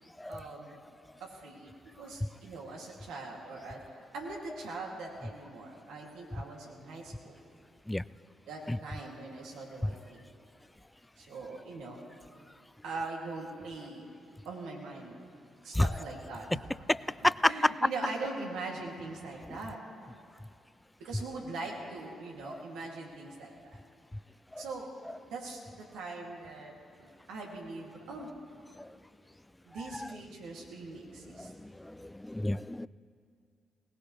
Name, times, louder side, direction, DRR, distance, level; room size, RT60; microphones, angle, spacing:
voice 1, 0.3-0.7 1.2-7.4 8.5-10.3 11.2-12.0 12.8-14.1 14.4-15.1 15.6-16.6 17.5-19.8 21.0-23.8 24.6-24.9 25.3-26.7 27.0-28.3 29.7-31.5, right 3 dB, 80° right, -2 dB, 2.5 m, -41 dB
voice 2, 17.2-17.7 19.5-19.6 22.5-22.6 24.5-24.6 28.8-28.9 29.8-30.1 31.3-32.9, left 1 dB, 10° left, 18 dB, 0.3 m, -30 dB
20.5 x 19.0 x 3.2 m, 2.4 s
supercardioid pair, 55°, 0 cm